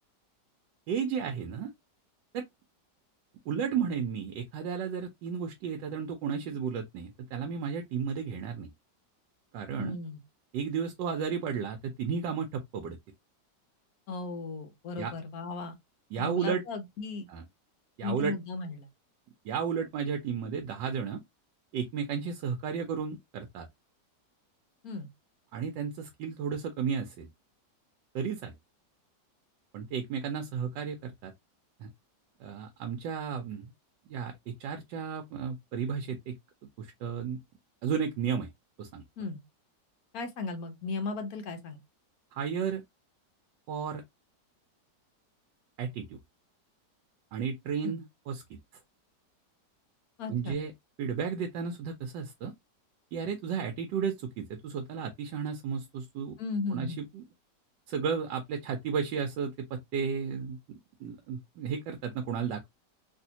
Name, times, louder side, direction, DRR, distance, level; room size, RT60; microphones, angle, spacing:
voice 1, 0.9-1.7 2.3-2.5 3.5-8.7 9.5-10.0 10.5-13.0 15.0-15.1 16.1-16.6 17.3-17.4 18.0-18.3 19.4-21.2 21.7-23.7 25.5-27.3 28.1-28.5 29.7-31.3 31.8-31.9 32.4-33.7 34.1-36.4 36.8-37.4 37.8-38.5 38.8-39.0 42.3-42.8 43.7-44.0 45.8-46.2 47.3-48.6 50.3-50.7 51.0-52.5 53.1-56.4 56.7-57.2 57.9-62.7, right 6 dB, 90° right, 1.3 m, -33 dB
voice 2, 9.8-10.2 14.1-15.7 16.2-17.3 18.0-18.9 24.8-25.1 39.2-39.4 40.1-41.8 47.8-48.0 50.2-50.6 56.4-57.0, left 3 dB, 65° left, 1.1 m, -36 dB
3.4 x 2.7 x 2.7 m
omnidirectional pair, 1.9 m